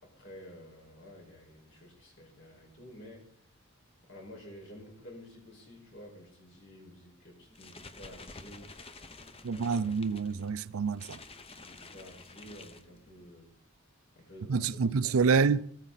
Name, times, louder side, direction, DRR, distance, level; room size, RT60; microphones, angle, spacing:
voice 1, 0.0-3.3 4.0-8.7 9.4-9.9 11.6-13.5 14.2-14.9 15.2-15.4, left 1 dB, 60° left, 5.4 m, -51 dB
sound 1, 7.4-13.3, left 3 dB, 25° left, 0.9 m, -50 dB
voice 2, 9.4-11.2 14.5-15.7, right 5 dB, 85° right, 0.5 m, -27 dB
15.5 x 14.0 x 4.1 m
head